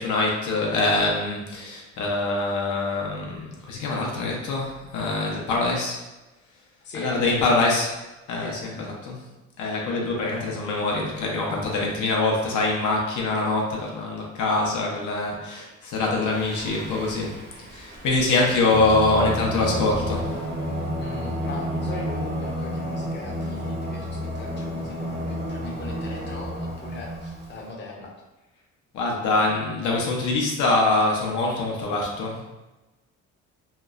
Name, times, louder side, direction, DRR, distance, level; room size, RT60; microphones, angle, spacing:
voice 1, 0.0-6.0 6.9-7.9 8.3-9.2 9.6-17.4 17.7-20.3 28.9-32.5, left 2 dB, 80° left, -2 dB, 0.6 m, -24 dB
voice 2, 6.8-7.7 8.4-8.6 18.1-18.4 20.6-28.1, left 2 dB, 35° left, -1 dB, 0.6 m, -39 dB
Singing, 16.3-27.6, equal, 35° right, 0.7 m, -31 dB
2.9 x 2.0 x 2.3 m, 1.1 s
cardioid pair, 90°, 30 cm